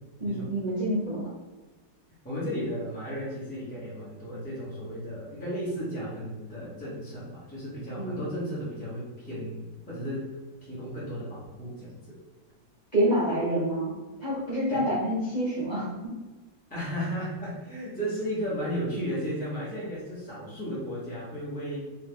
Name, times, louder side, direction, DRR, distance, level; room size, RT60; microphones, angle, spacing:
voice 1, 0.2-1.3 8.0-8.3 12.9-13.9 14.2-16.1, right 1 dB, 40° right, -10 dB, 0.7 m, -27 dB
voice 2, 2.2-9.6 9.9-10.3 10.6-12.2 14.7-14.8 16.7-21.8, equal, 10° left, -10 dB, 0.5 m, -34 dB
2.8 x 2.7 x 3.6 m, 1.2 s
omnidirectional pair, 1.9 m